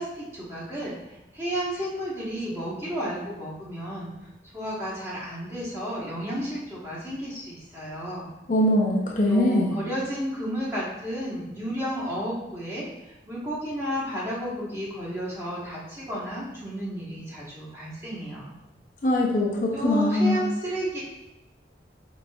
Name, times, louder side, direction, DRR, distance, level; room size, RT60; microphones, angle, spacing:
voice 1, 0.0-4.1 4.5-8.3 9.3-18.5 19.7-21.0, equal, 15° right, -7 dB, 1.1 m, -32 dB
voice 2, 8.5-9.7 19.0-20.4, left 1 dB, 45° left, -2 dB, 0.5 m, -22 dB
4.9 x 3.8 x 2.3 m, 0.92 s
head